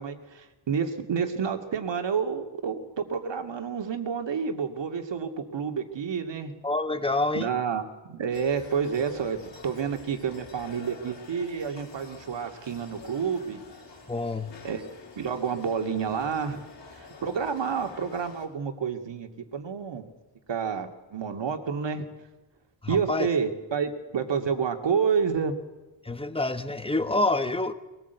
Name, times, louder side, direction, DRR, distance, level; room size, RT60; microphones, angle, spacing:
voice 1, 0.0-6.5 7.3-13.6 14.6-14.8 15.2-16.6 16.9-20.1 20.5-22.1 22.9-25.6, right 6 dB, 65° right, 5 dB, 2.4 m, -29 dB
voice 2, 6.6-7.5 14.1-14.5 22.8-23.3 26.0-27.7, left 2 dB, 10° left, 10 dB, 1.3 m, -27 dB
sound 1, 8.3-18.5, left 4 dB, 65° left, 4.5 m, -48 dB
22.0 x 18.5 x 8.2 m, 1.1 s
cardioid pair, 100°, 47 cm